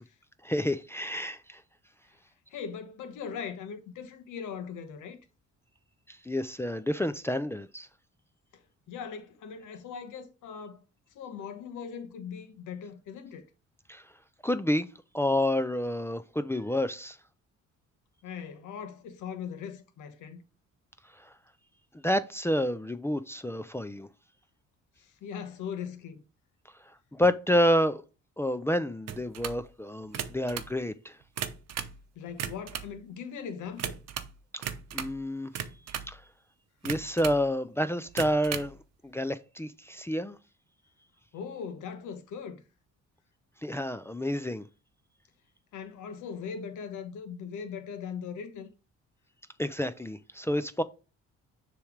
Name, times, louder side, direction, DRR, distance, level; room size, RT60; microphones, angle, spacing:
voice 1, 0.4-1.6 6.1-7.9 13.9-14.0 14.4-14.9 15.1-17.2 21.2-21.3 22.0-24.1 27.1-28.0 28.4-31.2 34.5-34.7 34.9-35.5 36.1-36.2 36.8-38.8 39.0-40.4 43.6-44.6 49.6-50.8, equal, 10° left, 0.4 m, -29 dB
voice 2, 2.5-5.2 8.5-10.8 11.1-13.5 18.2-20.4 25.0-26.2 32.1-34.0 41.3-42.6 45.7-48.7, left 7 dB, 85° left, 1.1 m, -40 dB
sound 1, 29.1-29.6 30.0-30.7 31.2-32.0 32.3-32.9 33.8-34.3 34.6-35.2 35.5-36.1 36.8-37.4 38.1-38.7, right 9 dB, 55° right, 0.8 m, -36 dB
6.8 x 3.3 x 4.9 m
cardioid pair, 90°, 30 cm